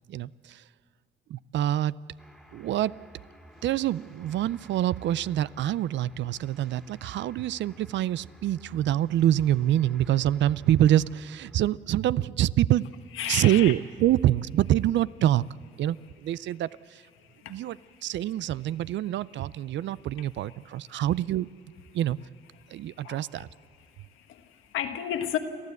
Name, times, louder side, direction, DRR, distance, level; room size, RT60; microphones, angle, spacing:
voice 1, 0.1-0.6 1.3-2.0 2.5-3.0 3.6-12.9 13.3-15.4 15.8-17.0 17.5-21.5 21.9-22.2 22.7-23.5, right 12 dB, 65° right, 20 dB, 0.4 m, -26 dB
sound 1, 2.2-11.6, equal, ahead, 2.1 m, -53 dB
voice 2, 13.1-13.7 17.2-18.1 20.9-21.0 22.6-23.3 23.9-25.4, left 10 dB, 85° left, 6 dB, 1.5 m, -34 dB
30.0 x 12.5 x 8.2 m, 2.4 s
cardioid pair, 90°, 20 cm